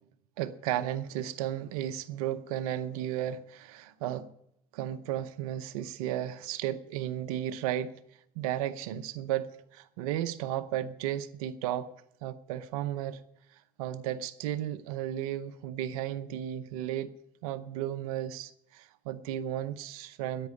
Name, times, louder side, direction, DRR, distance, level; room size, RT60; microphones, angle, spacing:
voice 1, 0.4-4.3 4.7-7.9 8.4-11.9 12.2-13.2 13.8-17.1 17.4-20.5, right 11 dB, 85° right, 11 dB, 0.7 m, -34 dB
10.5 x 8.6 x 9.7 m, 0.75 s
hypercardioid pair, 75°, 19 cm